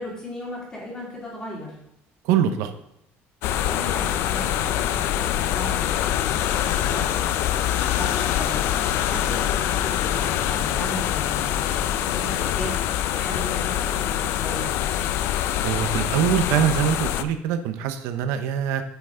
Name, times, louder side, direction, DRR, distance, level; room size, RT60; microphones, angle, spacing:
voice 1, 0.0-1.7 3.5-14.7, left 1 dB, 15° left, -5 dB, 2.9 m, -36 dB
voice 2, 2.2-2.7 15.6-18.8, right 9 dB, 80° right, 8 dB, 0.7 m, -23 dB
sound 1, 3.4-17.2, left 11 dB, 60° left, 0.4 m, -24 dB
9.1 x 5.5 x 3.7 m, 0.80 s
cardioid pair, 170°, 5 cm